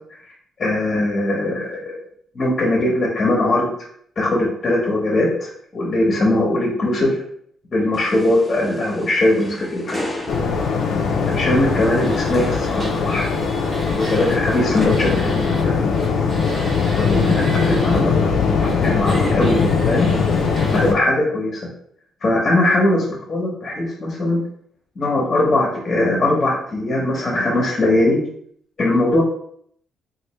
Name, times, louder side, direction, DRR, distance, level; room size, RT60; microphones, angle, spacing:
voice 1, 0.6-2.0 2.3-3.7 4.2-7.2 7.7-10.1 10.3-10.6 11.3-13.3 13.9-15.9 16.2-16.3 16.9-20.1 20.7-21.7 22.2-24.4 25.0-28.2 28.8-29.2, left 1 dB, 40° left, -3 dB, 0.9 m, -20 dB
sound 1, 7.9-14.8, left 1 dB, 10° left, 0.7 m, -37 dB
Waves surf, 10.3-20.9, left 5 dB, 70° left, 0.5 m, -20 dB
sound 2, 12.0-15.6 15.9-18.0 18.6-20.8, right 1 dB, 35° right, 1.1 m, -35 dB
3.1 x 2.6 x 3.0 m, 0.65 s
cardioid pair, 90°, 0 cm